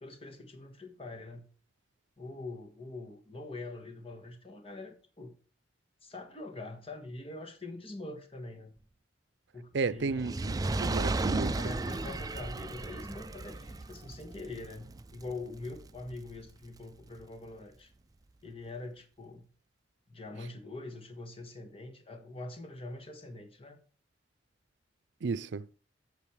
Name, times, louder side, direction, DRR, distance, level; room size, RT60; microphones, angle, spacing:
voice 1, 0.0-1.5 2.2-5.4 6.0-8.7 9.5-10.5 11.4-17.9 18.4-19.5 20.1-23.8, left 2 dB, 35° left, 1.6 m, -44 dB
voice 2, 9.7-10.5 10.8-11.6 25.2-25.7, right 4 dB, 85° right, 0.5 m, -32 dB
Fire, 10.1-16.5 17.2-17.3, right 2 dB, 20° right, 0.4 m, -35 dB
8.8 x 6.4 x 4.9 m
head